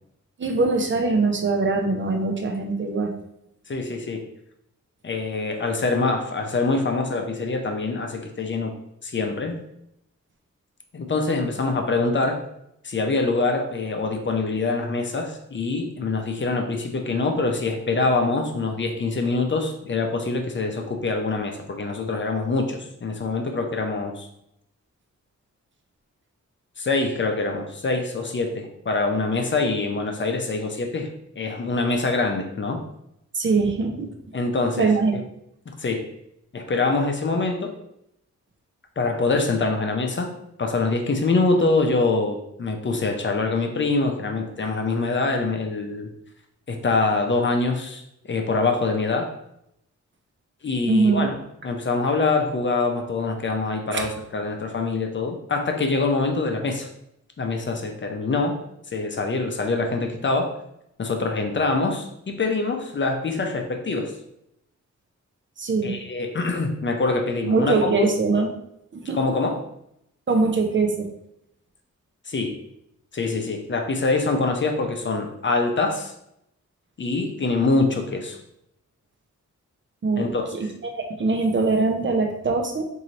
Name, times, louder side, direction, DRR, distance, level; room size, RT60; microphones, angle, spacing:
voice 1, 0.4-3.1 33.3-34.1 34.8-35.2 50.9-51.3 53.9-54.1 65.6-66.0 67.4-68.5 68.9-69.2 70.3-71.1 80.0-80.3 80.6-80.7 80.9-82.8, right 3 dB, 40° right, 4 dB, 0.5 m, -22 dB
voice 2, 3.7-4.3 5.0-8.7 9.0-9.6 10.9-12.4 12.8-24.3 26.8-31.1 31.4-32.8 34.3-35.2 35.8-36.1 36.5-37.7 39.0-40.3 40.6-46.1 46.7-48.0 48.3-49.3 50.6-51.3 51.6-56.9 57.4-58.6 58.9-60.5 61.0-64.1 65.8-68.1 69.1-69.6 72.3-72.5 73.1-76.1 77.0-78.4 80.2-80.7, left 3 dB, 40° left, 4 dB, 0.6 m, -24 dB
3.0 x 2.7 x 3.9 m, 0.78 s
wide cardioid pair, 85°, 30 cm